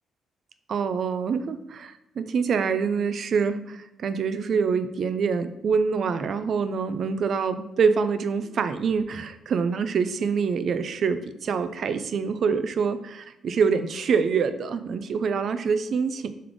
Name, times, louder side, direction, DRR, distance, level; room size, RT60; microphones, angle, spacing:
voice 1, 0.7-16.3, right 5 dB, 60° right, 11 dB, 0.3 m, -25 dB
3.4 x 3.2 x 3.8 m, 0.89 s
cardioid pair, 90°, 0 cm